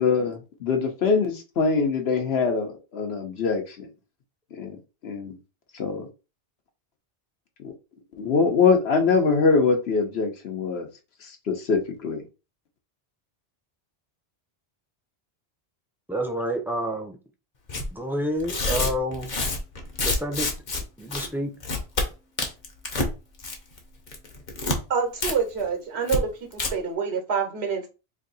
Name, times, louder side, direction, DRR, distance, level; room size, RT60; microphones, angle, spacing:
voice 1, 0.0-3.9 4.6-4.8 5.0-5.3 5.7-6.1 7.6-7.7 8.2-10.9 11.2-12.2, left 5 dB, 80° left, 1.2 m, -23 dB
voice 2, 16.1-17.2 17.9-19.5 20.0-20.5 21.0-21.5, equal, 5° right, 0.5 m, -29 dB
Tearing, 17.7-17.9 18.4-20.8 21.1-21.3 21.6-22.1 22.4-23.1 23.4-23.8 24.1-24.8 25.2-25.3 25.6-25.7 26.1-26.2 26.5-26.7, left 2 dB, 50° left, 1.0 m, -27 dB
voice 3, 24.9-27.9, right 6 dB, 85° right, 1.2 m, -27 dB
3.2 x 2.7 x 4.0 m
omnidirectional pair, 1.1 m